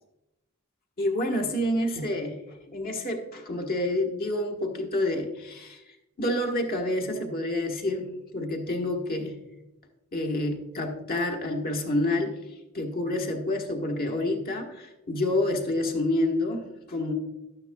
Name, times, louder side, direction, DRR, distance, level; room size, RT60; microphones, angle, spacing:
voice 1, 1.0-2.4 2.7-5.8 6.2-9.4 10.1-12.3 12.7-17.1, left 1 dB, 45° left, 3 dB, 1.3 m, -28 dB
12.5 x 9.5 x 2.3 m, 0.98 s
head